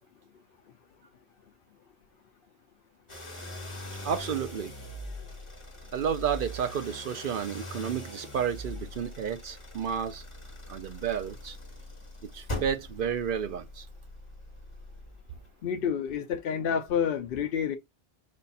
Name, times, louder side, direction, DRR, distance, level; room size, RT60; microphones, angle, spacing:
sound 1, 3.1-15.5, left 1 dB, 25° left, 1.3 m, -42 dB
voice 1, 4.0-4.7 5.9-10.2 10.7-11.6 12.2-13.8, right 8 dB, 60° right, 0.6 m, -31 dB
voice 2, 15.6-17.8, left 7 dB, 60° left, 0.7 m, -29 dB
5.2 x 2.3 x 4.1 m
omnidirectional pair, 1.2 m